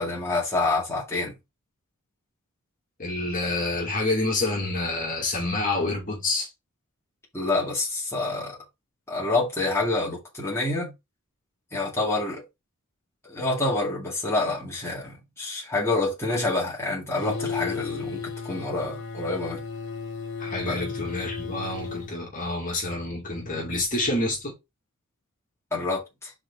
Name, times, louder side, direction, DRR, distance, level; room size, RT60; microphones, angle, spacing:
voice 1, 0.0-1.3 7.3-8.6 9.1-10.9 11.7-12.4 13.2-19.6 20.6-20.8 25.7-26.3, left 2 dB, 10° left, 2.2 m, -27 dB
voice 2, 3.0-6.5 20.4-24.5, left 2 dB, 35° left, 2.2 m, -28 dB
sound 1, 17.2-22.1, left 5 dB, 55° left, 1.2 m, -34 dB
4.8 x 4.2 x 4.8 m
head